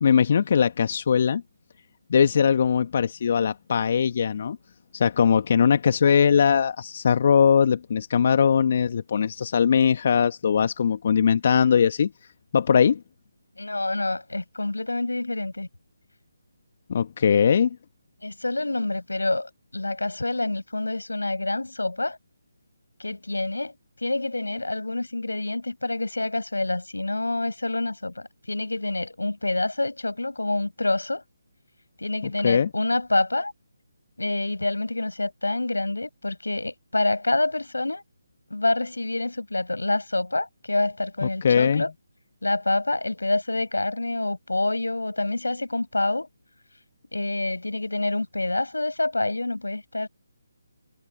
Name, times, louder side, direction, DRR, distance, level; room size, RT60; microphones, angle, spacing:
voice 1, 0.0-1.4 2.1-4.6 4.9-12.1 12.5-13.0 16.9-17.8 32.4-32.7 41.2-41.8, left 7 dB, 40° left, 1.4 m, -20 dB
voice 2, 13.6-15.7 18.2-22.2 23.0-23.7 24.0-31.2 32.0-33.5 34.2-38.0 38.5-41.9 42.4-46.3 47.1-50.1, left 2 dB, 75° left, 7.3 m, -27 dB
figure-of-eight pair, 150°, 0 cm